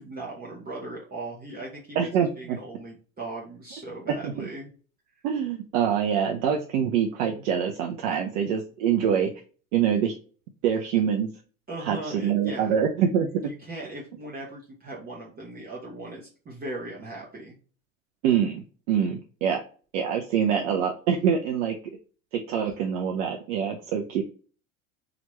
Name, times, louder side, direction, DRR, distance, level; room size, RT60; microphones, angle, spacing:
voice 1, 0.0-2.1 2.4-4.7 11.7-12.7 13.5-17.6, right 2 dB, 20° right, -4 dB, 0.9 m, -38 dB
voice 2, 2.0-2.6 4.2-4.5 5.2-9.3 9.7-10.1 10.6-11.3 11.8-13.5 18.2-19.6 19.9-21.8 22.3-24.2, right 8 dB, 65° right, 2 dB, 0.6 m, -25 dB
2.9 x 2.5 x 3.0 m, 0.40 s
hypercardioid pair, 85°, 41 cm